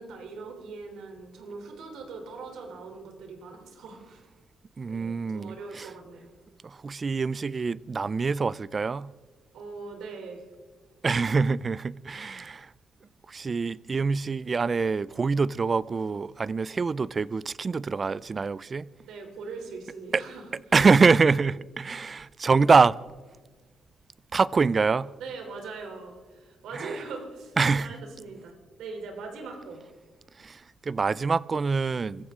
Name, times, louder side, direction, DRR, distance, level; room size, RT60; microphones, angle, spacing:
voice 1, 0.0-4.2 4.8-6.3 9.5-10.4 19.0-20.4 25.1-29.8, right 4 dB, 80° right, 3.4 m, -41 dB
voice 2, 4.8-5.9 6.6-9.1 11.0-12.7 13.3-18.9 20.1-20.2 20.7-23.0 24.3-25.1 26.7-27.0 27.6-28.0 30.4-32.3, right 4 dB, 35° right, 0.4 m, -25 dB
24.0 x 15.0 x 3.7 m
cardioid pair, 90°, 0 cm